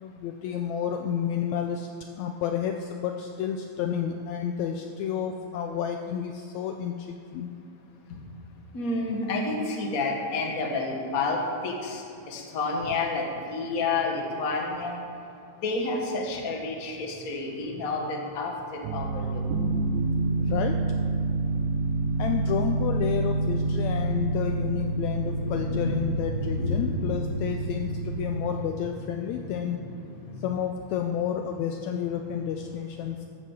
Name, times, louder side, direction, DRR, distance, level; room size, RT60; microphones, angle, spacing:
voice 1, 0.0-1.9 2.2-7.5 20.4-20.7 22.2-29.8 30.4-33.3, left 8 dB, 85° left, 5 dB, 1.6 m, -30 dB
voice 2, 8.7-15.0 15.6-19.4 25.3-26.2 26.6-28.0 29.4-30.4, left 3 dB, 40° left, 1 dB, 1.3 m, -30 dB
sound 1, 18.8-28.7, right 3 dB, 75° right, 2.1 m, -28 dB
12.5 x 8.3 x 7.2 m, 2.7 s
omnidirectional pair, 3.8 m